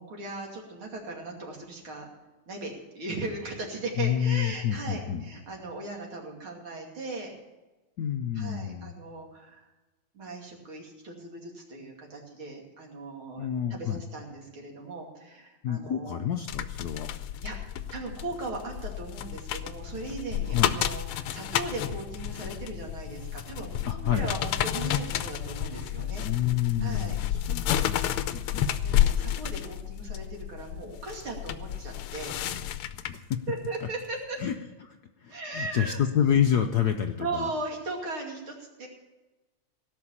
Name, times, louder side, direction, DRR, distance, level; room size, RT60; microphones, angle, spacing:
voice 1, 0.0-2.1 2.5-7.3 8.3-9.7 10.1-16.3 17.4-17.6 17.9-26.2 26.8-27.2 28.8-32.4 33.5-34.4 35.3-36.0 37.2-38.9, right 3 dB, 70° right, 0 dB, 3.4 m, -38 dB
voice 2, 4.0-5.2 8.0-8.9 13.4-14.0 15.6-17.1 20.5-20.8 23.9-24.3 26.2-28.7 32.5-33.4 34.4-34.5 34.8-37.5, left 9 dB, 65° left, 5 dB, 1.0 m, -28 dB
sound 1, 16.5-33.4 33.8-34.0, left 11 dB, 85° left, 1.6 m, -31 dB
17.5 x 6.0 x 8.7 m, 1.1 s
omnidirectional pair, 2.4 m